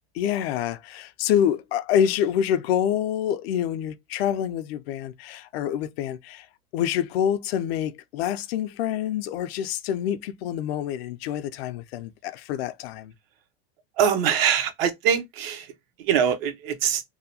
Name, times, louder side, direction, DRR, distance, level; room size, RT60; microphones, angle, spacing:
voice 1, 0.1-6.5 6.7-13.1, left 9 dB, 70° left, 0.5 m, -26 dB
voice 2, 14.0-15.7 16.0-17.0, right 8 dB, 65° right, 0.7 m, -23 dB
2.7 x 2.1 x 2.7 m
supercardioid pair, 130°, 32 cm